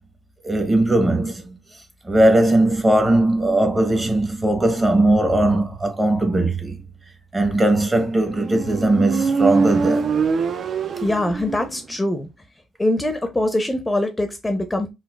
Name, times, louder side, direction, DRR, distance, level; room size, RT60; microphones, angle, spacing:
voice 1, 0.4-1.6 2.0-6.8 7.3-10.1, right 1 dB, 25° right, 0.9 m, -19 dB
Motorcycle, 8.3-11.9, right 5 dB, 55° right, 0.3 m, -23 dB
voice 2, 11.0-12.3 12.8-14.9, left 1 dB, 15° left, 0.5 m, -23 dB
3.9 x 2.3 x 2.2 m
cardioid pair, 90°, 0 cm